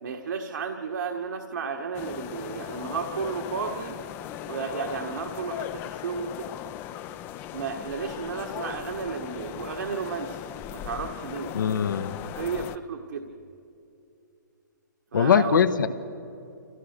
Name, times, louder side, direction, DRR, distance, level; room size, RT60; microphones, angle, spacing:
voice 1, 0.0-4.0 4.5-6.5 7.5-10.4 10.7-11.5 12.3-13.3 15.1-15.6, right 5 dB, 70° right, 3 dB, 1.6 m, -33 dB
sound 1, 1.9-12.8, left 12 dB, 20° left, 0.4 m, -38 dB
voice 2, 11.5-12.2 15.1-15.9, left 7 dB, 75° left, 9 dB, 1.1 m, -21 dB
26.0 x 16.5 x 6.6 m, 2.7 s
hypercardioid pair, 140°, 11 cm